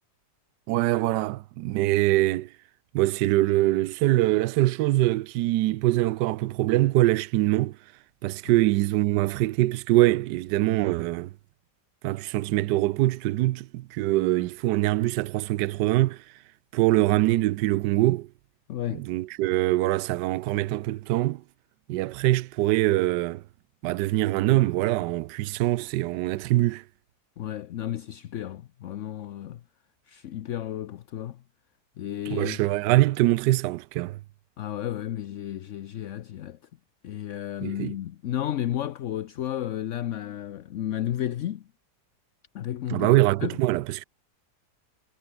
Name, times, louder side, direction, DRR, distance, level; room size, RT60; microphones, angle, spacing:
voice 1, 0.7-2.5 2.9-7.8 8.2-11.3 12.0-16.2 16.7-18.3 18.9-21.4 21.9-23.4 23.8-26.8 32.3-34.2 37.6-37.9 42.9-44.0, right 17 dB, 80° right, 1.2 m, -23 dB
voice 2, 18.7-19.0 27.4-29.6 30.1-31.4 32.0-32.6 34.6-36.6 37.0-41.7 42.5-43.1 43.4-43.6, left 11 dB, 60° left, 0.8 m, -32 dB
omnidirectional pair, 1.8 m